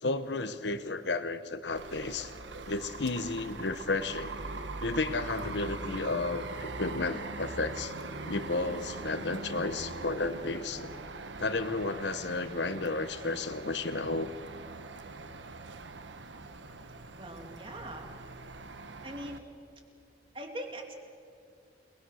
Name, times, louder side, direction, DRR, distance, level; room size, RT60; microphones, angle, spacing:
voice 1, 0.0-2.3 2.7-4.3 4.8-7.9 8.2-10.9 11.4-14.3, left 3 dB, 70° left, 11 dB, 1.0 m, -32 dB
sound 1, 1.8-19.4, right 3 dB, 85° right, 1.3 m, -42 dB
voice 2, 17.1-18.1 19.0-19.4 20.3-20.9, right 1 dB, 30° right, 3 dB, 2.8 m, -41 dB
30.0 x 21.0 x 6.5 m, 2.4 s
head